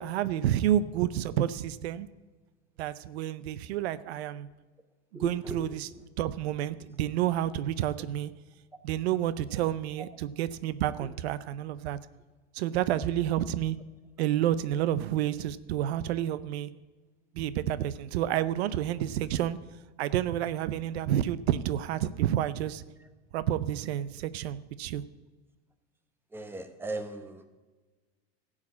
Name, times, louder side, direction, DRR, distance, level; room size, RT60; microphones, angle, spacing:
voice 1, 0.0-2.1 2.8-4.5 5.2-5.7 6.2-8.3 8.8-12.0 12.5-13.8 14.2-16.7 17.3-19.6 20.0-22.8 23.3-25.0, right 11 dB, 85° right, 15 dB, 0.6 m, -29 dB
voice 2, 5.1-6.0 8.0-8.1 8.9-9.0 9.4-9.6 10.0-10.1 11.0-11.1 12.0-12.1 23.0-23.1 26.3-27.5, right 2 dB, 5° right, 7 dB, 0.9 m, -39 dB
12.5 x 4.9 x 8.5 m, 1.3 s
supercardioid pair, 120°, 31 cm